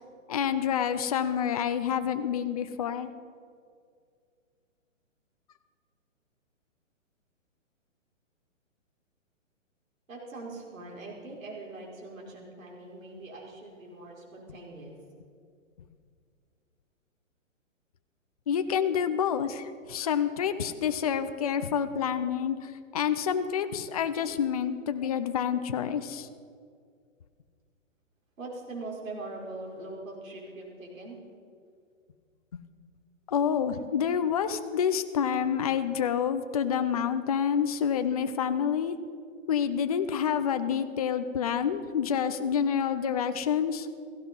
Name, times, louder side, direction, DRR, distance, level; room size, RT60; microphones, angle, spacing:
voice 1, 0.3-3.1 18.5-26.3 32.5-32.6 33.3-39.0 39.5-43.9, left 8 dB, 30° left, 10 dB, 0.5 m, -28 dB
voice 2, 10.1-14.9 28.4-31.2, right 2 dB, 85° right, -2 dB, 5.3 m, -42 dB
17.0 x 15.5 x 5.4 m, 2.2 s
hypercardioid pair, 160°, 39 cm